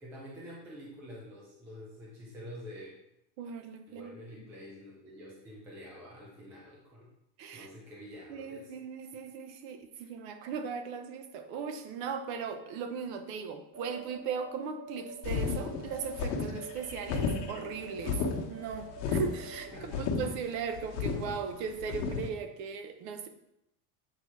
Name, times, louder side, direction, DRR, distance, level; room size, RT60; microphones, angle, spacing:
voice 1, 0.0-2.9 3.9-7.1 7.5-8.7 10.0-10.1 19.7-20.0, equal, 5° right, -4 dB, 0.3 m, -47 dB
voice 2, 3.4-4.1 7.4-7.7 8.3-18.2 18.5-23.3, right 6 dB, 45° right, 8 dB, 0.8 m, -38 dB
sound 1, 13.7-19.9, right 3 dB, 25° right, 1.1 m, -47 dB
sound 2, 15.2-22.3, left 5 dB, 80° left, 1.4 m, -33 dB
7.8 x 4.2 x 4.6 m, 0.84 s
supercardioid pair, 170°, 48 cm